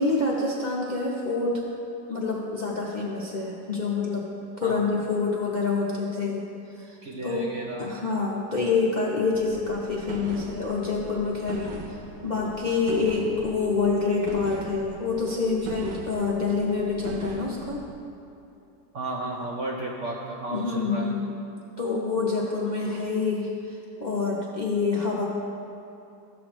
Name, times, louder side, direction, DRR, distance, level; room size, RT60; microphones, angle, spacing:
voice 1, 0.0-1.6 2.1-4.2 4.6-6.4 6.8-7.4 7.8-12.0 12.2-17.8 20.5-21.3 21.8-25.2, left 4 dB, 50° left, -5 dB, 0.5 m, -27 dB
voice 2, 7.0-7.9 18.9-21.1, right 2 dB, 65° right, -2 dB, 0.7 m, -33 dB
sound 1, 9.3-17.9, right 4 dB, 85° right, 1.4 m, -40 dB
13.5 x 6.9 x 3.0 m, 2.7 s
omnidirectional pair, 1.9 m